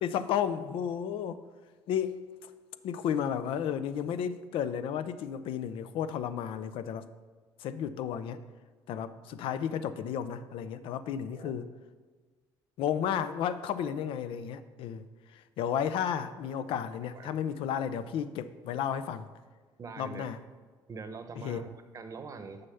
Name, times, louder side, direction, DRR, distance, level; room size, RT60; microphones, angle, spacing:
voice 1, 0.0-1.4 1.9-2.2 2.8-7.1 7.6-8.4 8.9-11.7 12.8-15.0 15.3-19.3 20.0-20.4 21.4-21.7, left 8 dB, 70° left, 0.5 m, -33 dB
voice 2, 19.8-20.3 20.9-22.7, right 4 dB, 35° right, 0.8 m, -43 dB
6.7 x 5.5 x 7.0 m
cardioid pair, 95°, 9 cm